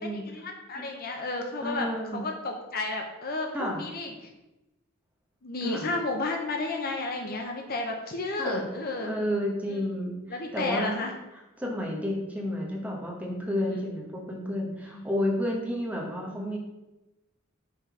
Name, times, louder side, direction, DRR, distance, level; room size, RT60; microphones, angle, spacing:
voice 1, 0.3-1.9 2.1-4.1 5.4-9.1 9.7-9.8 10.3-11.1 13.7-13.9 14.9-15.1, left 2 dB, 45° left, 3 dB, 0.7 m, -32 dB
voice 2, 1.6-2.2 3.5-3.8 5.6-5.9 8.4-8.6 9.0-11.0 11.6-16.6, equal, 5° right, -1 dB, 1.1 m, -31 dB
5.4 x 4.1 x 4.7 m, 0.99 s
head